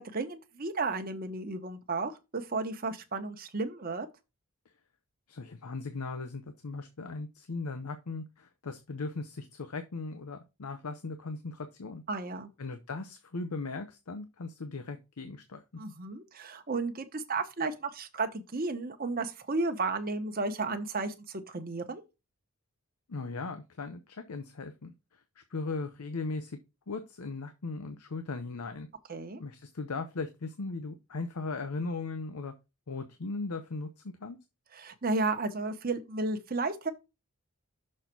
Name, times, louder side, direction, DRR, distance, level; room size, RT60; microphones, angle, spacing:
voice 1, 0.0-4.1 12.1-12.5 15.8-22.0 29.1-29.4 34.7-36.9, right 3 dB, 40° right, 1.0 m, -33 dB
voice 2, 5.3-12.0 12.6-15.6 23.1-26.6 26.9-28.9 29.4-32.5 32.9-34.4, left 3 dB, 85° left, 0.7 m, -38 dB
6.5 x 3.9 x 5.9 m
head